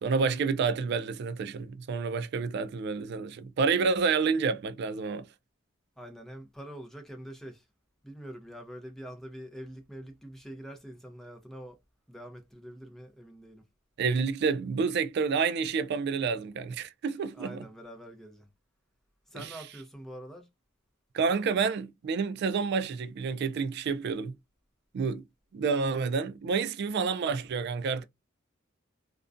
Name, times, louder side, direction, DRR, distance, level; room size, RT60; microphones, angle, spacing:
voice 1, 0.0-5.3 14.0-17.6 19.3-19.5 21.1-24.3 24.9-25.2 25.5-28.0, right 5 dB, 60° right, 0.3 m, -29 dB
voice 2, 6.0-7.7 8.0-11.8 12.1-13.7 17.3-18.5 19.3-20.5, equal, ahead, 0.6 m, -45 dB
2.4 x 2.1 x 2.5 m
head